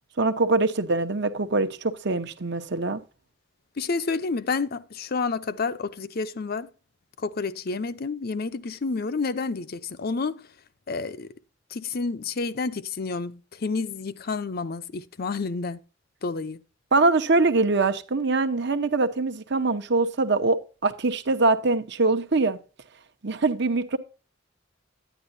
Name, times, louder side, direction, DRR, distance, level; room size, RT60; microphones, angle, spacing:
voice 1, 0.2-3.0 16.9-22.6 23.2-24.0, right 3 dB, 65° right, 0.9 m, -23 dB
voice 2, 3.8-6.7 7.2-10.4 10.9-11.3 11.7-15.8 16.2-16.6, left 4 dB, 55° left, 0.6 m, -29 dB
10.0 x 10.0 x 2.7 m
head